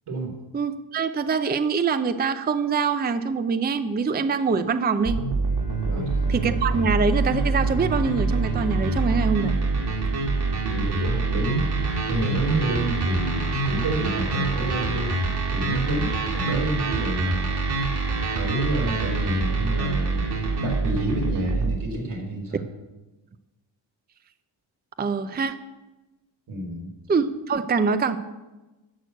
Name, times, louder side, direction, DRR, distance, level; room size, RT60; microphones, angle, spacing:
voice 1, 0.5-5.2 6.3-9.6 25.0-25.6 27.1-28.2, right 5 dB, 20° right, 11 dB, 0.5 m, -24 dB
sound 1, 5.0-21.8, right 3 dB, 50° right, 2.1 m, -25 dB
Bowed string instrument, 5.4-10.9, left 7 dB, 15° left, 1.3 m, -39 dB
voice 2, 10.7-11.7 12.1-15.1 15.5-17.5 18.3-20.3 20.6-22.6 26.5-26.9, right 1 dB, 90° right, -1 dB, 3.7 m, -29 dB
11.5 x 6.3 x 7.9 m, 1.1 s
wide cardioid pair, 110°, 48 cm